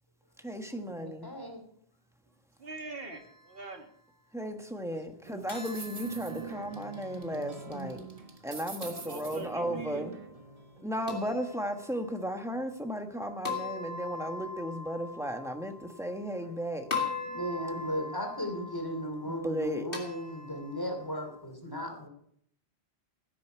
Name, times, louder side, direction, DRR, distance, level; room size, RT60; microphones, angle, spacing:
voice 1, 0.4-1.3 4.3-8.0 8.4-10.1 10.8-16.9 19.3-19.9, equal, 5° right, 1.3 m, -35 dB
voice 2, 1.0-1.6 16.4-16.6 17.2-22.1, equal, 20° left, 2.9 m, -36 dB
voice 3, 2.6-3.9 8.9-10.0, right 3 dB, 65° right, 2.1 m, -44 dB
sound 1, 5.2-11.1, right 4 dB, 35° right, 1.2 m, -44 dB
sound 2, 5.5-7.6 8.8-9.8 11.1-12.3 13.5-16.5 16.9-21.3, left 4 dB, 60° left, 2.6 m, -41 dB
17.0 x 9.6 x 4.6 m
omnidirectional pair, 1.1 m